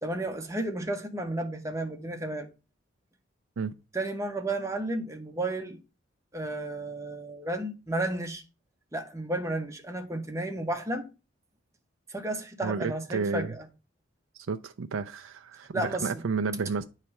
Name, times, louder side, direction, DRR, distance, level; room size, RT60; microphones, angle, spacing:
voice 1, 0.0-2.5 3.9-5.8 6.3-8.4 8.9-11.1 12.1-13.7 15.7-16.2, right 1 dB, 15° right, 1.0 m, -32 dB
voice 2, 12.6-13.5 14.5-16.8, right 5 dB, 85° right, 0.4 m, -31 dB
9.5 x 3.3 x 5.8 m
head